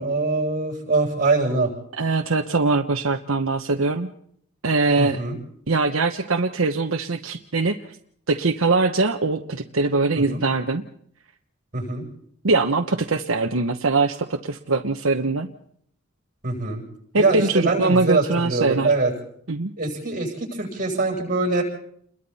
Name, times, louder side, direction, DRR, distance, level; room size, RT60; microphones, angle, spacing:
voice 1, 0.0-1.7 5.0-5.3 10.3-10.4 11.7-12.0 16.4-16.8 17.1-19.1 19.8-21.6, right 3 dB, 40° right, 1 dB, 7.9 m, -23 dB
voice 2, 2.0-4.1 4.6-5.2 5.7-7.8 8.3-10.8 12.4-15.5 17.1-18.9 19.5-19.7, right 3 dB, 75° right, 5 dB, 1.1 m, -22 dB
30.0 x 22.0 x 4.2 m, 0.66 s
head